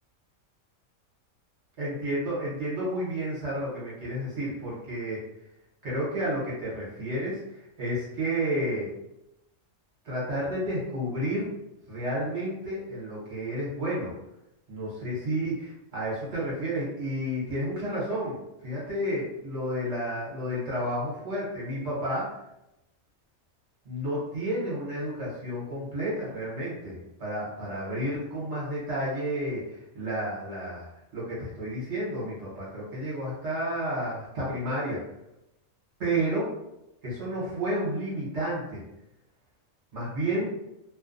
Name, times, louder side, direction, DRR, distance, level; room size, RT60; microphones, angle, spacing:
voice 1, 1.8-5.2 5.8-7.3 7.8-8.9 10.0-11.5 11.9-14.1 14.7-15.5 15.9-22.3 23.8-35.0 36.0-36.5 37.0-38.8 39.9-40.5, right 1 dB, 55° right, -7 dB, 1.2 m, -31 dB
2.7 x 2.2 x 2.5 m, 0.88 s
omnidirectional pair, 1.4 m